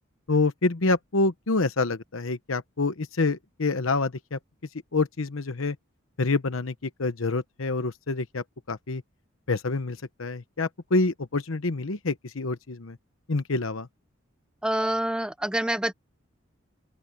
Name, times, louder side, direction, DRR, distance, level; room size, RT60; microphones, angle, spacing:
voice 1, 0.3-4.4 4.9-5.7 6.2-9.0 9.5-13.0 13.3-13.9, left 3 dB, 80° left, 1.0 m, -27 dB
voice 2, 14.6-15.9, right 1 dB, 5° right, 0.6 m, -26 dB
open air
head